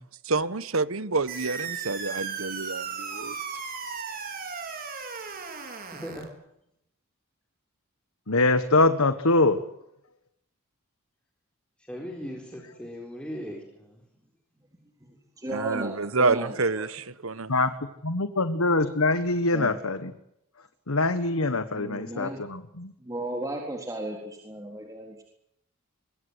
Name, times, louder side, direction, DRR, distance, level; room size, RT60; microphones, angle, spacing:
voice 1, 0.2-3.4 15.5-17.5, right 3 dB, 70° right, 16 dB, 1.3 m, -28 dB
sound 1, 1.3-6.3, right 5 dB, 45° right, 4.9 m, -36 dB
voice 2, 5.9-6.3 11.9-14.0, equal, 5° left, 0 dB, 4.2 m, -38 dB
voice 3, 8.3-9.6 17.5-17.7 18.0-20.1 20.9-22.9, left 2 dB, 80° left, 11 dB, 1.5 m, -23 dB
voice 4, 15.4-16.9 19.5-19.8 21.7-22.4 23.0-25.2, right 1 dB, 15° right, 0 dB, 3.9 m, -35 dB
25.0 x 22.5 x 8.2 m, 0.79 s
head